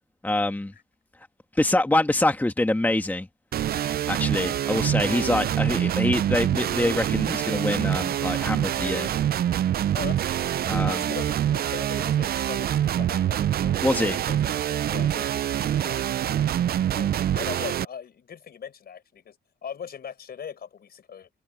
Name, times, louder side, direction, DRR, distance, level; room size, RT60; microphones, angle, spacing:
voice 1, 0.2-0.7 1.6-3.3 4.1-9.1 10.6-11.1 13.8-14.2, left 1 dB, 10° left, 1.5 m, -25 dB
sound 1, 3.5-17.8, right 11 dB, 50° right, 0.5 m, -25 dB
voice 2, 9.9-10.4 10.8-13.8 14.3-14.4 14.7-21.3, left 7 dB, 50° left, 4.7 m, -40 dB
cardioid pair, 90°, 20 cm